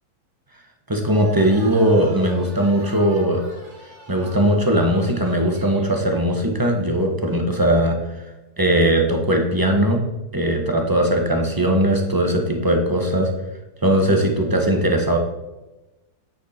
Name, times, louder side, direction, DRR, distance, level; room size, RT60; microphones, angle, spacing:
voice 1, 0.9-3.4 4.1-8.0 8.6-10.0 10.3-13.3 13.8-15.2, right 1 dB, 15° right, 2 dB, 1.0 m, -19 dB
sound 1, 1.1-6.0, right 2 dB, 40° right, 1.9 m, -41 dB
9.7 x 8.5 x 4.4 m, 1.0 s
omnidirectional pair, 2.1 m